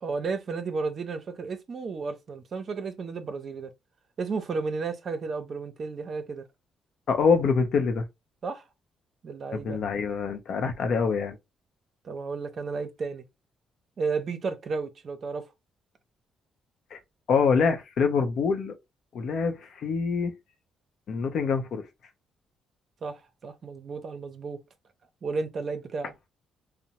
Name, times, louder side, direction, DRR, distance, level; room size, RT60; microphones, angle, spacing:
voice 1, 0.0-3.7 4.2-6.4 8.4-8.7 9.2-9.8 12.0-13.2 14.0-15.5 23.0-24.6 25.2-26.1, right 4 dB, 50° right, 0.6 m, -33 dB
voice 2, 7.1-8.1 9.5-11.4 16.9-17.0 17.3-18.7 19.1-20.3 21.1-21.8, left 5 dB, 65° left, 0.6 m, -25 dB
2.9 x 2.0 x 2.7 m
cardioid pair, 90°, 0 cm